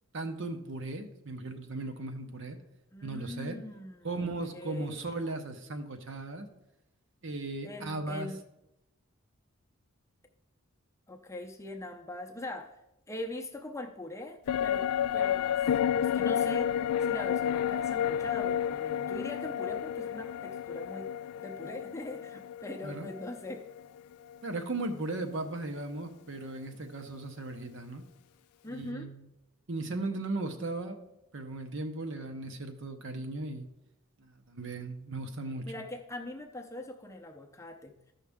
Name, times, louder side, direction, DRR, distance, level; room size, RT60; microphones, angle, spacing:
voice 1, 0.1-2.6 3.0-3.6 4.0-6.5 7.2-8.3 22.8-23.1 24.4-28.0 28.7-29.3 29.7-31.0 31.3-33.7 34.2-35.8, right 2 dB, 55° right, 7 dB, 0.9 m, -37 dB
voice 2, 2.9-5.1 7.6-8.4 11.1-12.8 13.1-14.9 15.1-15.7 16.0-16.7 17.0-21.1 21.4-23.6 28.6-29.1 35.6-38.1, left 1 dB, 15° left, 3 dB, 0.6 m, -42 dB
sound 1, 14.5-24.0 24.3-24.4, left 9 dB, 90° left, 0.3 m, -31 dB
13.5 x 5.6 x 3.6 m, 0.89 s
head